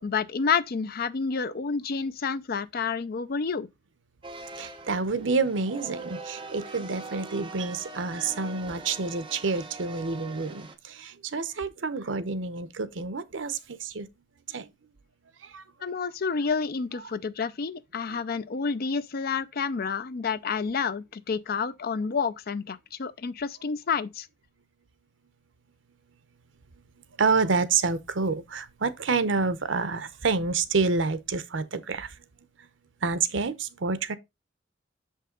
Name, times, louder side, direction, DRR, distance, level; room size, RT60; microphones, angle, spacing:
voice 1, 0.0-3.7 15.8-24.3, left 5 dB, 55° left, 0.5 m, -29 dB
sound 1, 4.2-10.7, right 3 dB, 25° right, 1.0 m, -42 dB
voice 2, 4.6-14.1 14.5-14.7 15.4-15.6 18.1-18.2 27.2-32.2 33.0-34.2, right 4 dB, 85° right, 0.8 m, -28 dB
6.5 x 5.5 x 3.8 m
head